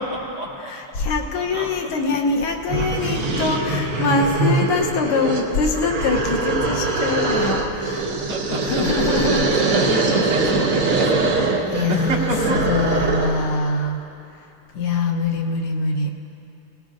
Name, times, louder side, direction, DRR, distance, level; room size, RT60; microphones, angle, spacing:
voice 1, 0.0-0.7 1.3-1.9 8.1-12.6, right 1 dB, 80° right, -4 dB, 2.7 m, -28 dB
voice 2, 0.6-8.1 8.6-9.5 11.6-14.0 14.7-16.1, left 3 dB, 80° left, 1 dB, 1.9 m, -23 dB
sound 1, 2.3-2.4 2.7-13.5, right 3 dB, 50° right, 1.1 m, -22 dB
19.0 x 18.5 x 2.5 m, 2.8 s
omnidirectional pair, 2.4 m